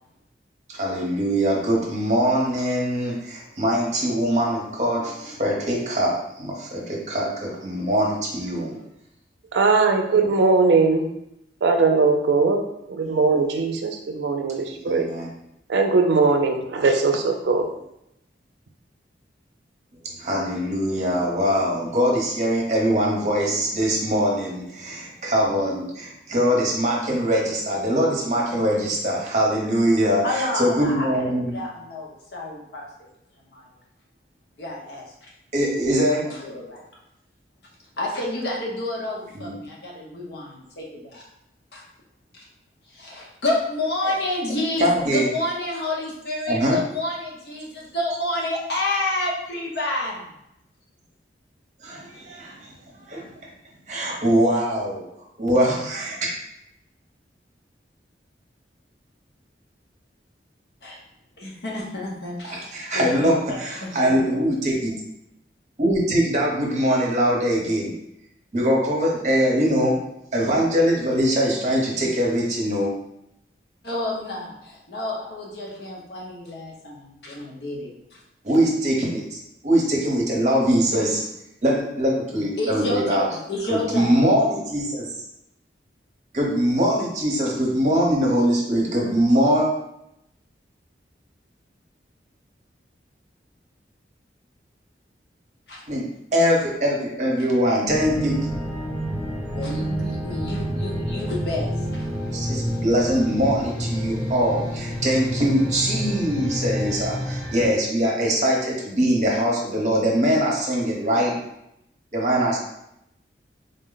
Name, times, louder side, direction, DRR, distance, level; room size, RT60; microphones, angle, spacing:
voice 1, 0.7-8.8 13.0-13.1 14.9-15.3 20.2-31.6 35.5-36.3 39.3-39.5 44.8-45.3 46.5-46.8 51.8-52.7 53.1-53.2 53.9-55.1 55.4-56.3 62.7-64.9 65.8-67.9 68.5-70.0 70.3-72.9 78.4-81.2 81.6-83.2 83.7-85.1 86.3-89.7 95.9-98.5 102.3-111.3 112.1-112.6, equal, 40° right, -2 dB, 0.8 m, -22 dB
voice 2, 9.5-11.1 11.6-12.6 12.9-15.1 15.7-17.7, right 4 dB, 75° right, 4 dB, 0.4 m, -20 dB
voice 3, 30.2-32.9 33.5-33.7 34.6-35.0 36.1-36.8 38.0-41.2 41.7-41.8 42.3-42.4 42.9-50.3 60.8-61.0 61.4-64.4 73.8-78.2 82.3-84.1 95.7-95.8 99.5-101.7, left 1 dB, 65° left, -2 dB, 0.9 m, -29 dB
sound 1, 97.9-107.7, equal, 5° right, 0.9 m, -28 dB
3.8 x 2.1 x 3.8 m, 0.81 s
head